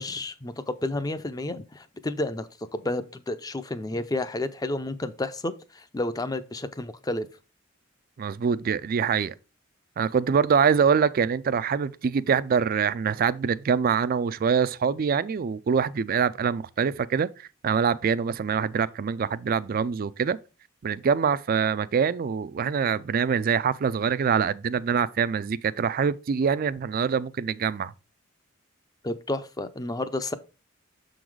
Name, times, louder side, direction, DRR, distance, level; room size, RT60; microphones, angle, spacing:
voice 1, 0.0-7.3 29.0-30.3, left 2 dB, 20° left, 0.5 m, -31 dB
voice 2, 8.2-9.3 10.0-17.3 17.6-20.4 20.8-27.9, right 6 dB, 45° right, 0.3 m, -24 dB
6.9 x 3.9 x 4.7 m
head